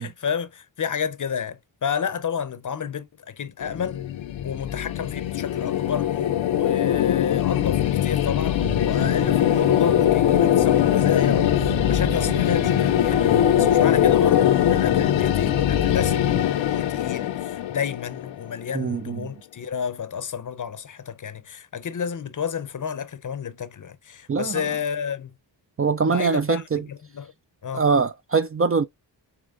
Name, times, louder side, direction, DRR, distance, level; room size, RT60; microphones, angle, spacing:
voice 1, 0.0-4.0 4.4-6.1 6.5-25.3 26.1-27.3 27.6-27.8, left 7 dB, 45° left, 0.7 m, -30 dB
sound 1, 3.6-18.7, left 11 dB, 80° left, 0.6 m, -21 dB
sound 2, 8.6-16.4, right 2 dB, 55° right, 2.9 m, -34 dB
voice 2, 18.7-19.2 24.3-24.6 25.8-26.8 27.7-28.8, right 5 dB, 30° right, 0.4 m, -23 dB
7.0 x 3.1 x 2.4 m
cardioid pair, 65°, 45 cm